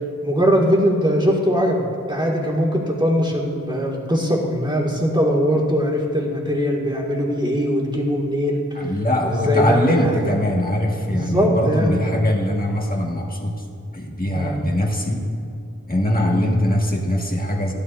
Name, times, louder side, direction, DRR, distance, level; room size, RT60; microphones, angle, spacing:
voice 1, 0.2-1.8 2.1-8.6 9.2-10.3 11.0-12.0 14.3-14.6, equal, 15° right, -3 dB, 1.9 m, -21 dB
voice 2, 8.7-13.7 13.9-15.2 15.9-17.7, left 1 dB, 25° left, -1 dB, 1.6 m, -21 dB
16.0 x 11.0 x 2.5 m, 2.4 s
wide cardioid pair, 40°, 34 cm